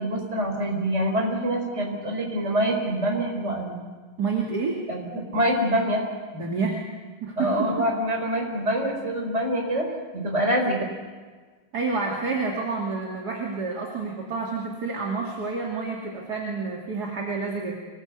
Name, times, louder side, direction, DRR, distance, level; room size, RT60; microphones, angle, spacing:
voice 1, 0.0-3.8 4.9-6.0 7.4-9.9 10.1-10.9, equal, 35° right, 2 dB, 5.1 m, -25 dB
voice 2, 4.2-4.8 6.3-6.8 7.2-7.7 11.7-17.7, right 4 dB, 50° right, -1 dB, 3.1 m, -29 dB
26.0 x 20.0 x 8.2 m, 1.4 s
omnidirectional pair, 2.2 m